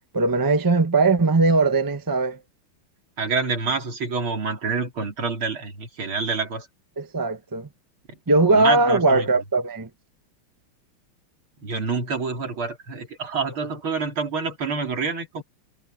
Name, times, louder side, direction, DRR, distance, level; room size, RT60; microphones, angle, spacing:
voice 1, 0.1-2.4 7.0-7.7 8.3-9.9, right 3 dB, 15° right, 0.7 m, -20 dB
voice 2, 3.2-6.7 8.1-8.2 8.5-9.2 11.6-15.4, right 4 dB, 80° right, 4.3 m, -27 dB
omnidirectional pair, 2.3 m